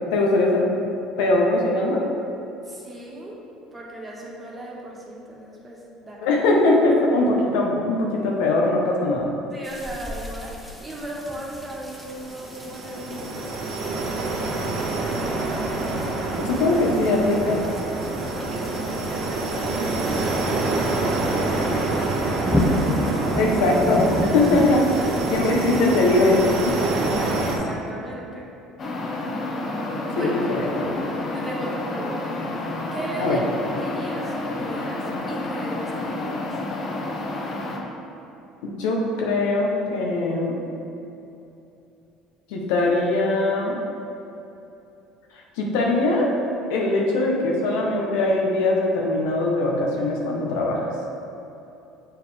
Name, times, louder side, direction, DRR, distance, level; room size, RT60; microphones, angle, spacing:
voice 1, 0.1-0.7 1.2-2.1 6.2-9.3 16.4-17.6 23.4-24.9 25.3-26.7 30.2-30.9 33.2-33.4 38.6-40.6 42.5-43.8 45.6-46.3 46.7-50.9, left 2 dB, 85° left, -1 dB, 0.9 m, -21 dB
voice 2, 2.7-3.4 3.7-6.4 6.9-7.0 9.5-13.6 13.9-14.9 18.3-23.0 24.2-24.5 24.9-25.1 26.9-28.5 30.1-30.4 31.3-32.3 32.9-36.6, right 1 dB, 20° right, -4 dB, 1.4 m, -37 dB
sound 1, 9.6-26.0, left 1 dB, ahead, 0.8 m, -32 dB
sound 2, 11.9-27.6, right 2 dB, 65° right, 1.3 m, -26 dB
sound 3, 28.8-37.8, left 2 dB, 45° left, 0.9 m, -30 dB
7.1 x 4.5 x 3.3 m, 2.8 s
supercardioid pair, 95°, 0 cm